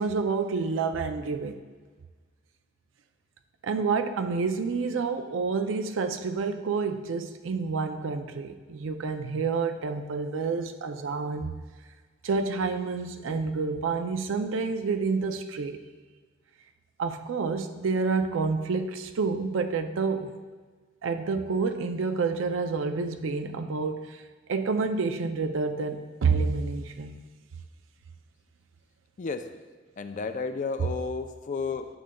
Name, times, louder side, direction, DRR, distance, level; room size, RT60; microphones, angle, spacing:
voice 1, 0.0-1.6 3.6-11.5 12.2-15.8 17.0-20.3 21.0-24.2 24.5-27.2, right 4 dB, 90° right, 8 dB, 0.4 m, -28 dB
voice 2, 30.0-31.9, left 4 dB, 40° left, 9 dB, 0.4 m, -32 dB
10.0 x 6.4 x 2.3 m, 1.4 s
head